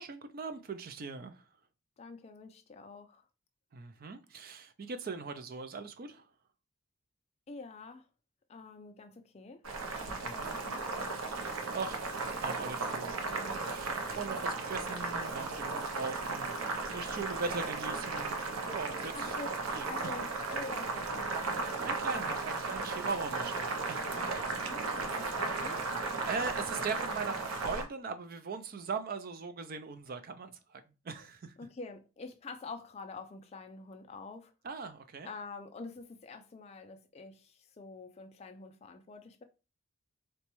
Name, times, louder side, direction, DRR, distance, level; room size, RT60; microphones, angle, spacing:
voice 1, 0.0-1.5 3.7-6.3 10.2-10.6 11.3-12.0 12.4-16.5 16.9-18.4 18.7-19.3 19.7-20.2 21.8-24.1 26.0-31.5 34.6-35.3, right 4 dB, 45° right, 0.4 m, -40 dB
voice 2, 2.0-3.2 7.5-8.0 8.5-9.6 10.0-10.9 19.1-19.5 19.9-21.5 24.6-25.9 31.6-34.5 35.2-39.4, left 3 dB, 30° left, 0.3 m, -46 dB
Boiling, 9.6-27.8, right 3 dB, 85° right, 0.7 m, -35 dB
4.0 x 2.2 x 3.0 m
head